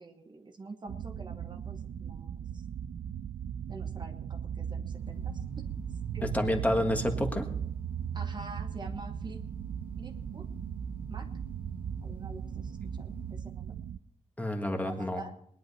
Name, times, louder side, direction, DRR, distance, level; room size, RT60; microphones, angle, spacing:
voice 1, 0.0-2.6 3.7-6.3 8.1-9.4 10.0-10.5 11.1-11.3 12.0-13.8 14.9-15.3, right 3 dB, 35° right, 5 dB, 1.2 m, -47 dB
sound 1, 0.9-14.0, right 9 dB, 90° right, 0.5 m, -38 dB
sound 2, 4.9-13.6, right 1 dB, 15° right, 1.8 m, -46 dB
voice 2, 6.2-7.5 14.4-15.2, left 1 dB, 10° left, 3 dB, 1.6 m, -29 dB
20.5 x 10.5 x 4.2 m, 0.70 s
wide cardioid pair, 175°, 14 cm